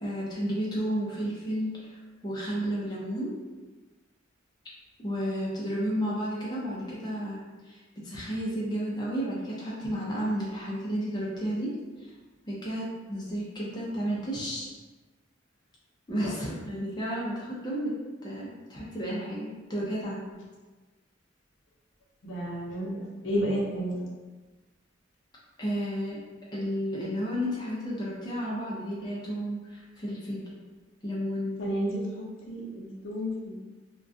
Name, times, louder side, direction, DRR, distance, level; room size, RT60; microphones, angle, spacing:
voice 1, 0.0-3.3 5.0-11.7 12.0-12.1 12.5-14.7 16.1-18.0 18.2-20.3 25.6-26.2 26.5-30.4 31.0-31.6, equal, 20° left, -6 dB, 0.4 m, -32 dB
voice 2, 22.2-24.1 31.6-33.6, equal, 75° left, -4 dB, 0.6 m, -31 dB
2.3 x 2.1 x 2.5 m, 1.2 s
head